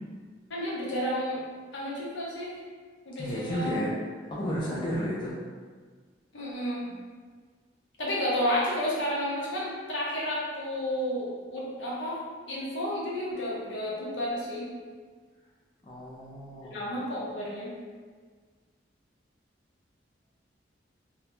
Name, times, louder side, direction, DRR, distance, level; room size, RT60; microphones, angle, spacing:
voice 1, 0.5-1.4 1.7-2.5 3.1-3.9 6.3-6.9 8.0-12.2 12.5-14.6 16.6-17.7, equal, 80° left, -6 dB, 0.7 m, -31 dB
voice 2, 3.2-3.9 4.3-5.4 15.8-16.9, equal, 25° left, -7 dB, 0.3 m, -32 dB
2.3 x 2.0 x 2.9 m, 1.5 s
head